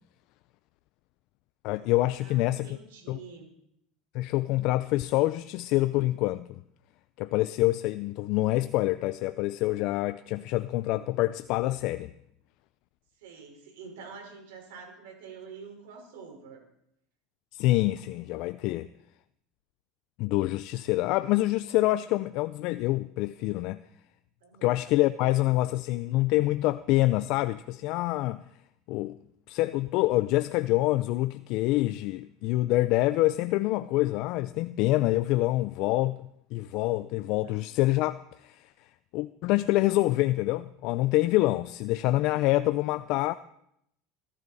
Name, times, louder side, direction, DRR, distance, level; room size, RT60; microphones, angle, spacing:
voice 1, 1.6-2.8 3.1-3.2 4.1-6.6 7.2-12.1 17.5-18.9 20.2-23.8 24.6-28.4 28.9-29.2 29.5-36.2 36.5-38.7 39.1-43.3, left 17 dB, 60° left, 0.5 m, -26 dB
voice 2, 2.2-3.5 13.2-16.6 24.4-24.8 37.4-37.6, right 5 dB, 85° right, 4.6 m, -46 dB
21.5 x 12.5 x 4.1 m
supercardioid pair, 115°, 0 cm